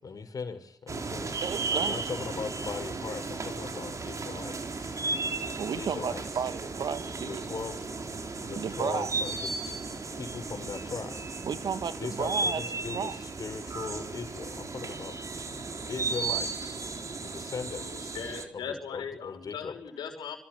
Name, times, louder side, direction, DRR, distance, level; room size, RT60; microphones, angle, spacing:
voice 1, 0.0-1.4 1.7-5.1 5.8-6.2 7.2-7.9 8.4-11.2 12.0-15.2 15.9-16.8 17.2-18.1 18.5-19.8, left 5 dB, 55° left, 5.5 m, -39 dB
sound 1, 0.9-18.5, right 3 dB, 45° right, 3.9 m, -35 dB
voice 2, 1.4-2.0 5.6-7.4 8.6-9.1 11.4-12.6 12.9-13.1, right 7 dB, 65° right, 1.8 m, -33 dB
voice 3, 17.7-20.4, left 7 dB, 80° left, 5.5 m, -39 dB
26.5 x 25.0 x 6.2 m
supercardioid pair, 55°, 7 cm